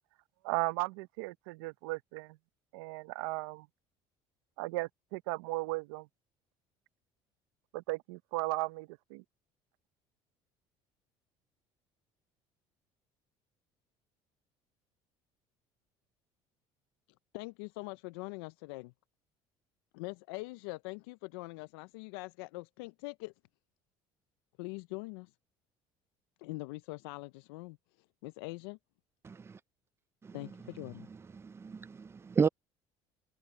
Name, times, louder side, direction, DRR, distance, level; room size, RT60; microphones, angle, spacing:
voice 1, 0.4-2.4 2.7-3.7 4.6-6.1 7.7-9.2, right 23 dB, 85° right, 0.9 m, -36 dB
voice 2, 17.3-18.9 19.9-23.3 24.6-25.3 26.4-27.8 28.2-28.8 30.3-31.1, left 24 dB, 85° left, 0.5 m, -43 dB
voice 3, 29.2-29.6 30.2-30.4 31.4-32.5, right 5 dB, 20° right, 0.4 m, -32 dB
supercardioid pair, 85°, 12 cm